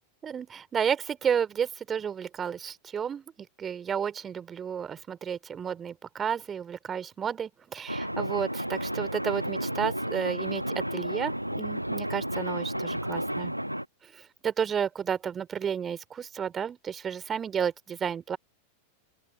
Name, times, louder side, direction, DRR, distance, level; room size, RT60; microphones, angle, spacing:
voice 1, 0.2-3.2 3.6-13.5 14.1-18.4, right 7 dB, 20° right, 3.3 m, -32 dB
sound 1, 7.9-13.9, equal, 90° right, 1.1 m, -32 dB
open air
figure-of-eight pair, 90°, 0 cm